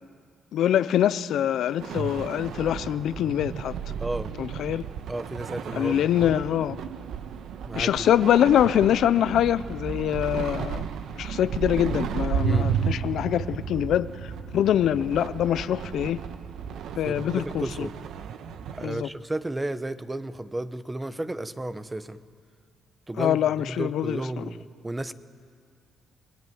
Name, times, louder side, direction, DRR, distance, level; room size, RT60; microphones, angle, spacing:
voice 1, 0.5-3.7 4.4-4.8 5.7-6.8 7.7-10.8 11.2-16.2 17.0-17.9 18.8-19.1 23.2-24.4, left 10 dB, 75° left, 15 dB, 0.7 m, -24 dB
sound 1, 1.8-18.9, right 7 dB, 75° right, 1.3 m, -33 dB
voice 2, 4.0-4.3 5.1-5.9 6.2-6.4 7.7-8.1 12.4-12.7 17.0-17.9 18.7-22.2 23.1-25.1, right 1 dB, 15° right, 12 dB, 1.1 m, -33 dB
29.5 x 21.0 x 9.5 m, 2.1 s
cardioid pair, 90°, 0 cm